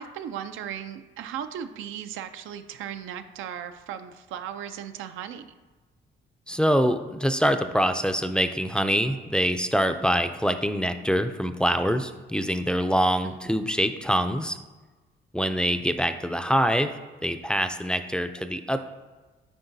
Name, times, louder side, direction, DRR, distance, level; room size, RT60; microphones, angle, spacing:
voice 1, 0.0-5.5 13.5-13.6, right 9 dB, 85° right, 9 dB, 0.5 m, -37 dB
voice 2, 6.5-14.6 15.3-16.9 17.2-18.8, equal, 5° left, 8 dB, 0.4 m, -24 dB
9.6 x 4.4 x 2.7 m, 1.3 s
cardioid pair, 90°, 20 cm